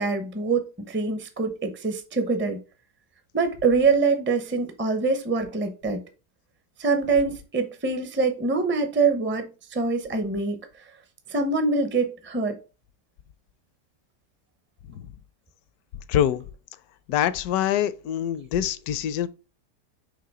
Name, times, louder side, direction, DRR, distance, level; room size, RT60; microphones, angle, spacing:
voice 1, 0.0-2.6 3.3-6.0 6.8-10.6 11.3-12.6, right 4 dB, 15° right, 0.3 m, -24 dB
voice 2, 16.1-16.4 17.1-19.3, left 10 dB, 75° left, 1.1 m, -25 dB
5.7 x 3.4 x 4.8 m
omnidirectional pair, 1.8 m